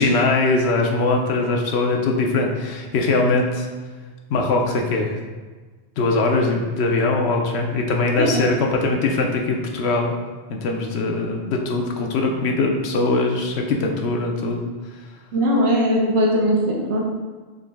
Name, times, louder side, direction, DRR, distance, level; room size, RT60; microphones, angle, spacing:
voice 1, 0.0-3.7 4.3-5.2 6.0-10.1 10.5-14.6, left 3 dB, 80° left, 1 dB, 0.9 m, -21 dB
voice 2, 15.3-17.0, equal, 75° right, -3 dB, 0.9 m, -19 dB
3.8 x 2.9 x 3.4 m, 1.3 s
omnidirectional pair, 1.1 m